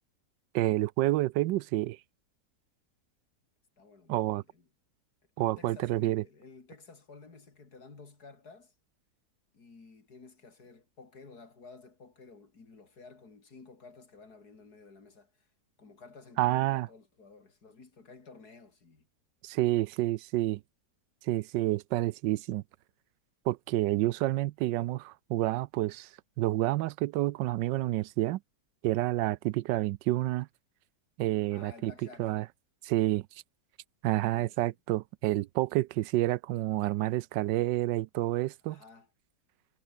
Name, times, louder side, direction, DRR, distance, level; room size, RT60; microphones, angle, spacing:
voice 1, 0.5-2.0 4.1-4.4 5.4-6.2 16.4-16.9 19.4-20.6 21.2-22.6 23.5-26.1 26.4-28.4 28.8-30.5 31.2-31.9 32.2-32.4 32.8-33.3 34.0-38.8, right 17 dB, 85° right, 1.2 m, -29 dB
voice 2, 3.8-4.7 5.4-8.7 9.5-15.5 15.8-19.1 31.5-32.4 34.3-34.8 38.6-39.1, left 4 dB, 60° left, 3.7 m, -53 dB
omnidirectional pair, 1.9 m